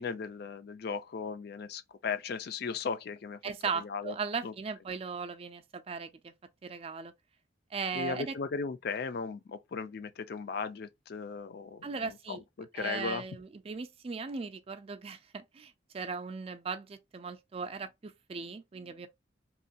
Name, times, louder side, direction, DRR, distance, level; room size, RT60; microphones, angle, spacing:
voice 1, 0.0-3.4 3.7-4.2 4.4-4.5 7.9-13.2, left 5 dB, 55° left, 0.4 m, -37 dB
voice 2, 3.4-6.3 6.6-7.1 7.7-8.3 11.8-12.4 12.8-19.1, right 5 dB, 30° right, 0.3 m, -38 dB
3.0 x 2.2 x 2.5 m
head